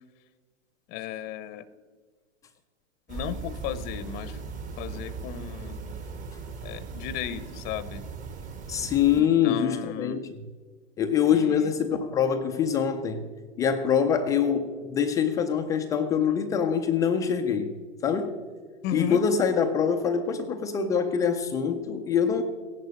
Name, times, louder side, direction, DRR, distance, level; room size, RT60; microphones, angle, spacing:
voice 1, 0.9-1.7 3.1-4.4 4.8-5.8 6.6-8.1 9.2-10.2 11.3-11.7 18.8-19.2, left 11 dB, 25° left, 15 dB, 0.7 m, -35 dB
sound 1, 3.1-9.2, right 4 dB, 20° right, 1.1 m, -38 dB
voice 2, 8.7-10.3 11.0-13.2 13.6-17.7 18.0-18.4 18.9-22.4, left 7 dB, 10° left, 5 dB, 0.3 m, -24 dB
16.5 x 11.0 x 6.3 m, 1.5 s
hypercardioid pair, 120°, 37 cm